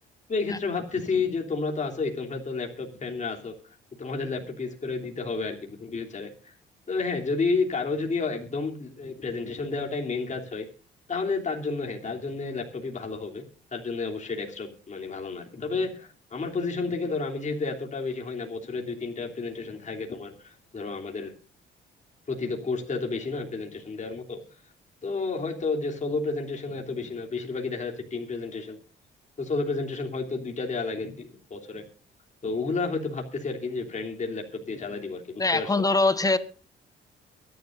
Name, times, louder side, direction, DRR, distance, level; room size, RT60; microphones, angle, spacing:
voice 1, 0.3-3.5 4.0-6.5 6.9-10.7 11.1-13.4 13.7-21.3 22.3-24.4 25.0-28.8 29.4-31.8 32.4-35.7, left 4 dB, 35° left, 1 dB, 3.1 m, -31 dB
voice 2, 35.4-36.4, left 3 dB, 20° left, 13 dB, 1.3 m, -22 dB
23.0 x 11.0 x 2.6 m, 0.36 s
cardioid pair, 90°, 20 cm